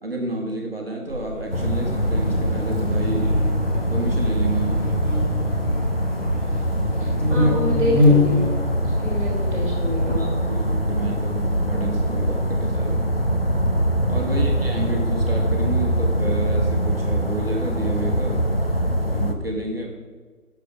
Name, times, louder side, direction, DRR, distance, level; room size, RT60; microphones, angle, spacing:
voice 1, 0.0-3.3 3.9-5.0 7.3-7.6 9.7-13.0 14.1-18.4 19.1-19.9, right 2 dB, 40° right, -1 dB, 1.2 m, -30 dB
Buzz, 1.1-13.2, left 2 dB, 15° right, 1.2 m, -27 dB
sound 1, 1.5-19.3, equal, 40° left, 0.7 m, -23 dB
voice 2, 7.0-8.4 8.8-10.2 14.2-14.5, left 1 dB, 10° left, -15 dB, 1.6 m, -28 dB
8.7 x 6.7 x 5.0 m, 1.4 s
figure-of-eight pair, 170°, 45 cm